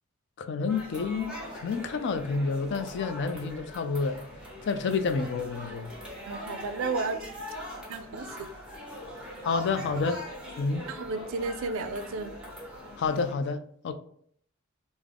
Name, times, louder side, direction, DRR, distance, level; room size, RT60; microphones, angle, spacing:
voice 1, 0.4-4.2 4.6-5.9 9.4-10.2 10.6-10.8 13.0-13.9, left 4 dB, 55° left, 0.3 m, -29 dB
sound 1, 0.7-13.3, equal, 5° right, 1.0 m, -42 dB
voice 2, 6.3-7.2 7.9-8.3 10.9-12.3, right 3 dB, 65° right, 0.4 m, -32 dB
3.5 x 2.0 x 3.4 m
head